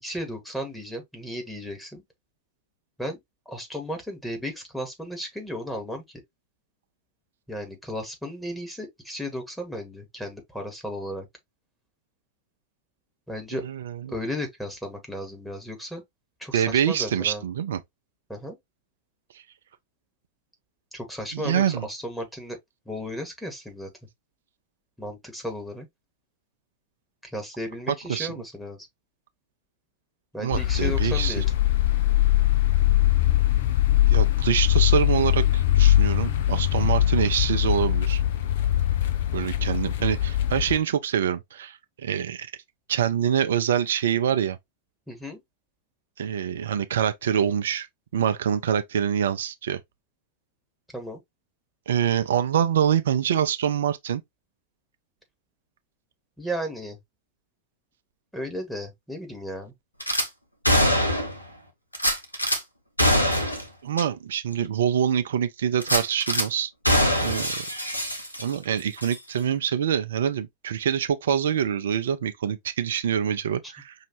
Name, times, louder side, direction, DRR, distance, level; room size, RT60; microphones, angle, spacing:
voice 1, 0.0-2.0 3.0-3.2 3.4-6.0 7.5-11.3 13.3-13.7 14.1-16.0 16.4-17.4 18.3-18.6 20.9-22.6 22.8-23.9 25.0-25.9 27.2-28.8 30.3-31.5 45.1-45.4 50.9-51.2 56.4-57.0 58.3-59.7 73.6-73.7, equal, ahead, 1.7 m, -34 dB
voice 2, 13.5-14.1 16.5-17.8 21.3-21.9 27.9-28.3 30.4-31.4 34.1-38.2 39.3-42.5 42.9-44.6 46.2-47.9 48.1-49.8 51.9-54.2 63.8-66.7 67.2-67.6 68.4-73.9, right 9 dB, 60° right, 0.6 m, -25 dB
sound 1, 30.5-40.8, left 13 dB, 55° left, 0.7 m, -22 dB
Gunshot gunfire / Glass, 60.0-60.3 60.6-61.4 61.9-62.6 63.0-63.6 64.0-64.1 64.5-64.6 65.8-66.5 66.8-68.6 69.0-69.2, equal, 85° left, 1.0 m, -23 dB
5.6 x 2.8 x 2.9 m
figure-of-eight pair, 90°, 0 cm